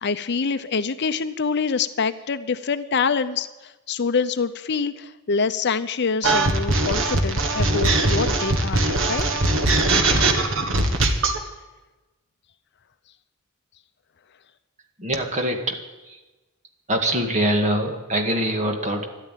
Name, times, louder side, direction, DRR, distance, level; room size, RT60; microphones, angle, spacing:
voice 1, 0.0-9.3, left 5 dB, 50° left, 12 dB, 0.6 m, -25 dB
sound 1, 6.2-11.4, right 2 dB, 65° right, 1.8 m, -20 dB
voice 2, 15.0-16.2 16.9-19.0, right 1 dB, 35° right, 3 dB, 2.0 m, -24 dB
13.0 x 12.0 x 9.1 m, 1.1 s
head